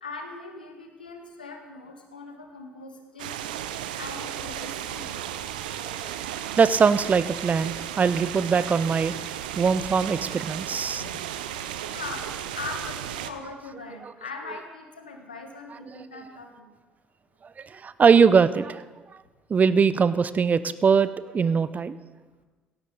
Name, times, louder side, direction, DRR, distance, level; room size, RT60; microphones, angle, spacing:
voice 1, 0.0-3.5 4.0-5.2 11.0-11.4 11.9-16.7, left 3 dB, 85° left, 4 dB, 1.5 m, -40 dB
sound 1, 3.2-13.3, right 11 dB, 70° right, 0.6 m, -34 dB
voice 2, 5.8-9.1 9.6-11.0 14.0-14.1 17.6-18.8 19.5-22.0, right 5 dB, 35° right, 16 dB, 0.6 m, -22 dB
16.5 x 16.0 x 4.0 m, 1.3 s
figure-of-eight pair, 50°, 5 cm